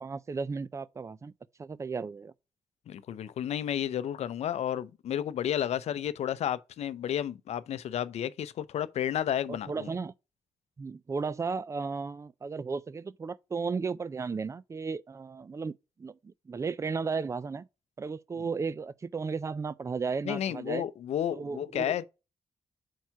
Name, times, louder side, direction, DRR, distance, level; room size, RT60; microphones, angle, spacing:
voice 1, 0.0-1.3 1.6-2.3 9.5-10.1 10.8-17.7 18.0-20.8 21.3-21.9, right 5 dB, 25° right, 0.4 m, -34 dB
voice 2, 2.9-9.9 20.3-22.1, left 10 dB, 80° left, 0.5 m, -32 dB
4.6 x 4.5 x 5.6 m
cardioid pair, 105°, 11 cm